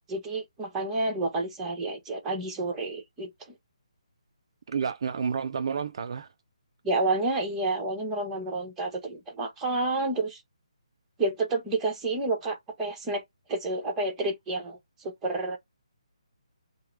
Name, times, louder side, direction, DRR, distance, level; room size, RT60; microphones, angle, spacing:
voice 1, 0.1-3.3 6.8-10.4 11.2-13.2 13.5-15.6, right 2 dB, 15° right, 1.2 m, -29 dB
voice 2, 4.7-6.3, right 6 dB, 50° right, 0.3 m, -30 dB
4.5 x 2.2 x 3.3 m
figure-of-eight pair, 145°, 3 cm